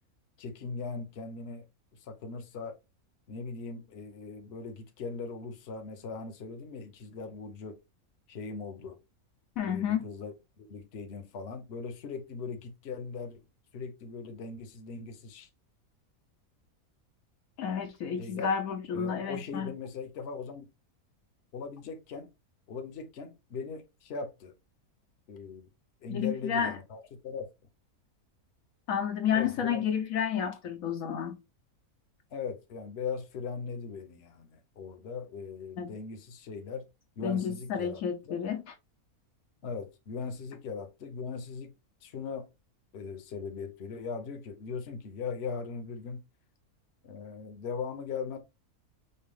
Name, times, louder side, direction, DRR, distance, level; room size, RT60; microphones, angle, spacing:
voice 1, 0.4-1.7 2.0-2.8 3.3-7.8 8.3-9.0 9.6-13.4 13.7-15.5 18.2-18.5 18.9-20.7 21.5-22.3 22.7-24.5 25.3-25.7 26.0-27.5 29.3-29.8 32.3-36.8 37.2-38.0 38.3-38.4 39.6-41.7 42.0-42.5 42.9-46.2 47.0-48.4, left 5 dB, 50° left, 1.0 m, -39 dB
voice 2, 9.6-10.1 17.6-19.7 26.1-26.8 28.9-31.4 35.8-35.9 37.2-38.7, left 8 dB, 70° left, 1.1 m, -31 dB
5.5 x 2.3 x 3.3 m
omnidirectional pair, 1.6 m